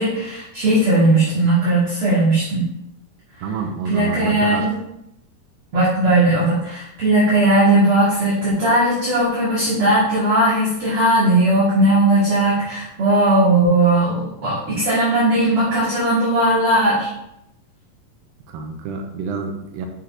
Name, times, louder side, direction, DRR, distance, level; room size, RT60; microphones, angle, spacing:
voice 1, 0.0-2.6 3.9-4.8 5.7-17.1, right 1 dB, 50° right, -9 dB, 1.9 m, -17 dB
voice 2, 3.4-4.6 18.5-19.9, right 5 dB, 85° right, 3 dB, 2.6 m, -28 dB
6.7 x 5.9 x 2.5 m, 0.83 s
omnidirectional pair, 4.0 m